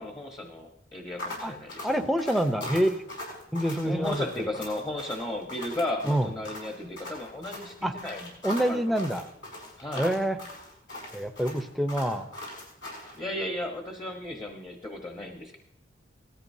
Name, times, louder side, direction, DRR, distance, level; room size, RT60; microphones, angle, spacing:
voice 1, 0.0-1.9 3.8-8.3 8.7-8.9 9.8-10.1 13.1-15.6, left 1 dB, 20° left, 2 dB, 1.1 m, -35 dB
sound 1, 1.2-13.2, left 1 dB, 70° left, 6.2 m, -40 dB
voice 2, 1.8-3.0 3.5-4.5 6.0-6.3 7.8-7.9 8.4-9.3 9.9-10.4 11.1-12.3, right 1 dB, ahead, 7 dB, 0.7 m, -26 dB
18.5 x 14.0 x 2.7 m, 0.78 s
head